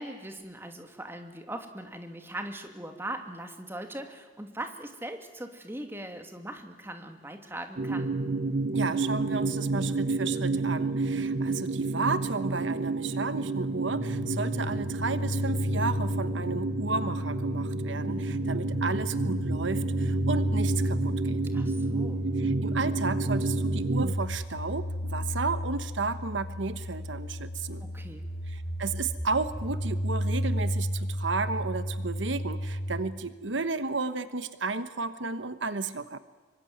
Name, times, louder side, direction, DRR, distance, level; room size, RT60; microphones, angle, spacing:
voice 1, 0.0-8.2 18.0-18.6 21.5-22.3 27.8-28.2, right 1 dB, 10° right, 5 dB, 2.5 m, -40 dB
sound 1, 7.8-24.1, right 3 dB, 45° right, 0.7 m, -30 dB
voice 2, 8.7-21.4 22.4-27.8 28.5-36.2, right 4 dB, 75° right, 12 dB, 1.2 m, -33 dB
sound 2, 13.8-33.0, equal, 65° left, 7.6 m, -32 dB
26.0 x 24.0 x 9.4 m, 1.4 s
head